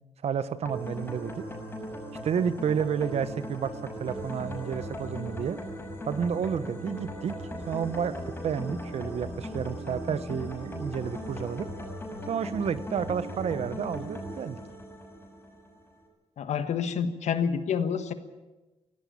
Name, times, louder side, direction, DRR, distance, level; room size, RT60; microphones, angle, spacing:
voice 1, 0.2-1.5 2.2-5.6 6.1-8.1 8.4-11.7 12.3-14.6, right 7 dB, 65° right, 14 dB, 1.1 m, -31 dB
sound 1, 0.6-15.7, equal, 20° left, 6.1 m, -38 dB
voice 2, 16.4-18.1, left 7 dB, 90° left, 10 dB, 1.4 m, -28 dB
18.0 x 17.0 x 8.8 m, 1.1 s
wide cardioid pair, 140°, 11 cm